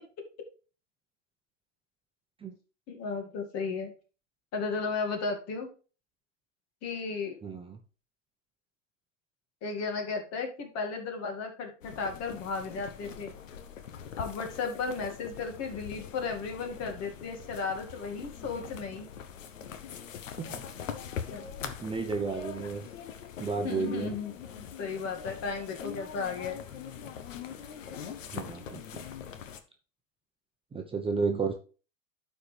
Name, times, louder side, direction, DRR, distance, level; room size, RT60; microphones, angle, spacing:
voice 1, 2.9-3.9 4.5-5.7 6.8-7.4 9.6-13.3 14.2-19.1 21.3-21.5 23.6-26.6, left 4 dB, 40° left, 4 dB, 2.2 m, -34 dB
voice 2, 7.4-7.8 20.4-20.6 21.6-22.9 23.4-24.2 28.3-29.1 30.7-31.5, right 4 dB, 15° right, 3 dB, 0.9 m, -32 dB
sound 1, 11.8-29.6, left 8 dB, 85° left, 1.0 m, -43 dB
12.0 x 4.5 x 3.3 m, 0.36 s
hypercardioid pair, 105°, 38 cm